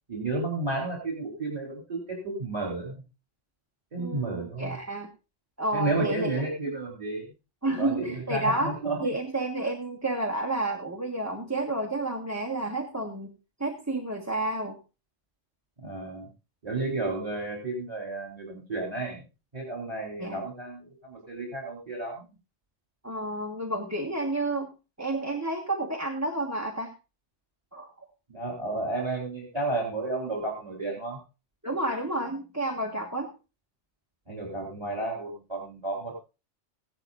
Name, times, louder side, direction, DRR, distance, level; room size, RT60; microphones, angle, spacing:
voice 1, 0.1-3.0 3.9-4.8 5.7-7.2 7.8-9.1 15.8-16.3 16.6-19.2 19.5-22.3 28.3-31.2 34.3-36.2, right 2 dB, 30° right, 0 dB, 4.1 m, -32 dB
voice 2, 4.0-5.1 5.6-6.3 7.6-8.7 9.0-13.3 13.6-14.8 20.2-20.4 23.0-24.7 25.0-26.9 27.7-28.1 31.6-33.3, right 2 dB, 15° right, 1 dB, 1.5 m, -30 dB
16.0 x 12.0 x 2.6 m, 0.30 s
omnidirectional pair, 1.2 m